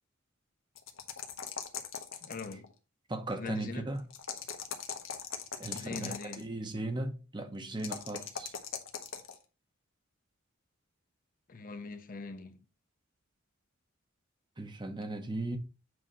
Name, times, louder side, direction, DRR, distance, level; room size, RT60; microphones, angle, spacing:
sound 1, 0.8-2.7 4.1-6.4 7.8-9.4, left 7 dB, 70° left, 1.0 m, -40 dB
voice 1, 2.2-2.7 3.4-3.9 5.7-6.5 11.5-12.6, left 4 dB, 40° left, 0.7 m, -42 dB
voice 2, 3.1-4.1 5.6-8.5 14.6-15.6, right 2 dB, 20° right, 0.8 m, -37 dB
7.7 x 2.8 x 5.4 m
head